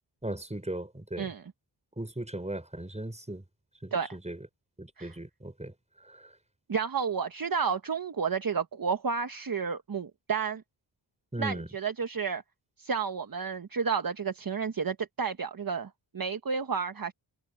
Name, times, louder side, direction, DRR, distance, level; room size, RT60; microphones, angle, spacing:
voice 1, 0.2-1.3 2.0-3.4 3.8-4.5 4.8-5.7 6.0-6.3 11.3-11.7, right 1 dB, 15° right, 5.4 m, -37 dB
voice 2, 6.7-10.6 11.4-12.4 12.8-15.9 16.1-17.1, right 6 dB, 45° right, 1.2 m, -31 dB
wide cardioid pair, 80°, 47 cm